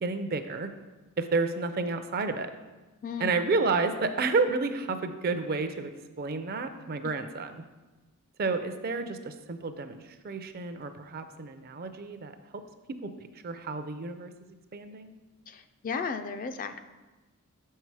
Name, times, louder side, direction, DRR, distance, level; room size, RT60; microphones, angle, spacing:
voice 1, 0.0-0.7 1.2-2.5 3.2-5.9 6.2-7.5 8.4-10.0 10.2-12.6 13.0-13.1 13.4-15.1, right 3 dB, 45° right, 9 dB, 0.5 m, -30 dB
voice 2, 3.0-3.4 7.0-7.1 15.5-16.8, left 5 dB, 35° left, 9 dB, 0.3 m, -35 dB
6.4 x 5.6 x 4.7 m, 1.2 s
head